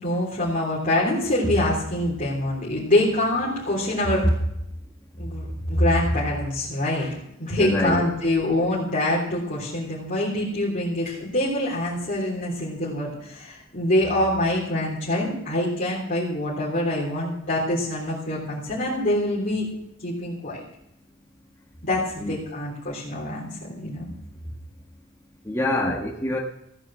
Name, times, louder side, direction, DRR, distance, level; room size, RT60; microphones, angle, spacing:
voice 1, 0.0-4.3 5.2-19.7 20.0-20.6 21.8-24.1, left 1 dB, 45° left, -6 dB, 3.5 m, -25 dB
voice 2, 7.6-8.1 22.2-22.4 25.4-26.4, left 1 dB, 15° left, -2 dB, 1.4 m, -25 dB
16.0 x 9.4 x 6.4 m, 0.81 s
head